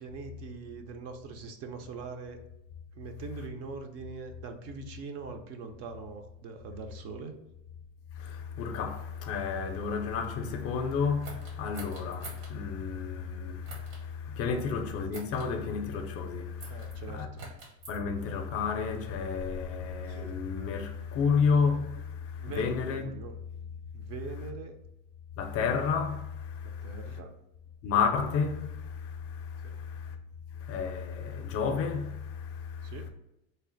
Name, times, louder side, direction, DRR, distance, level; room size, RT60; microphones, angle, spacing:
voice 1, 0.0-2.4 2.9-7.4 14.5-14.8 16.7-17.5 22.4-23.4 23.9-24.8 26.6-27.3 29.6-29.8 32.8-33.1, right 4 dB, 45° right, 0.5 m, -42 dB
voice 2, 8.2-17.3 17.9-23.0 25.4-27.0 27.8-30.2 30.6-32.9, left 6 dB, 45° left, 0.5 m, -31 dB
sound 1, 11.2-12.5 13.6-14.0 15.1-15.5 16.6-16.9 17.4-18.0 18.9-20.3, right 1 dB, 70° right, 1.2 m, -46 dB
3.2 x 2.4 x 3.8 m
cardioid pair, 140°, 34 cm